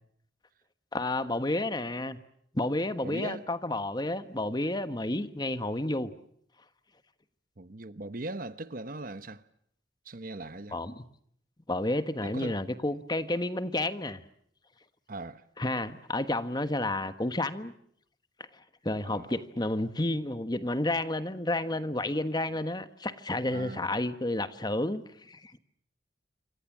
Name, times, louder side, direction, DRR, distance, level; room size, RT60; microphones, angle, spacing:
voice 1, 0.9-2.2 2.5-6.1 10.7-11.0 11.7-14.2 15.6-17.7 18.8-25.6, left 1 dB, 25° left, 1.3 m, -31 dB
voice 2, 3.0-3.5 7.6-9.4 10.0-10.8 12.2-12.6 15.1-15.4 19.1-19.3 23.5-23.9, right 2 dB, 50° right, 1.0 m, -39 dB
27.5 x 25.0 x 7.4 m
head